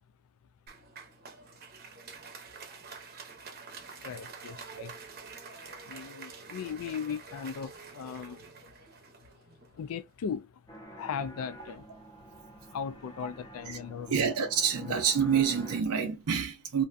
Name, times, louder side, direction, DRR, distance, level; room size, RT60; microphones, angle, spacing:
Applause, 0.7-10.0, right 5 dB, 45° right, 0.7 m, -47 dB
voice 1, 4.0-5.1 5.9-8.5 9.7-10.6 10.9-11.9 12.7-14.3 14.8-15.0, left 7 dB, 75° left, 0.3 m, -38 dB
sound 1, 10.7-15.8, right 1 dB, 15° left, 0.5 m, -49 dB
voice 2, 14.1-16.8, right 7 dB, 85° right, 0.5 m, -27 dB
2.5 x 2.2 x 2.4 m
head